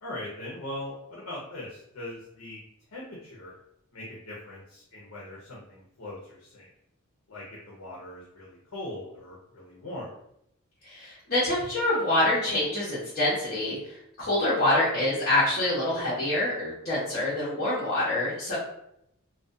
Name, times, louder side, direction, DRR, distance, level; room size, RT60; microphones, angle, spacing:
voice 1, 0.0-2.6 2.9-3.6 3.9-6.7 7.3-10.1, left 1 dB, 70° left, -5 dB, 0.6 m, -40 dB
voice 2, 10.8-18.5, left 1 dB, 45° left, -11 dB, 0.8 m, -26 dB
2.4 x 2.2 x 2.5 m, 0.75 s
head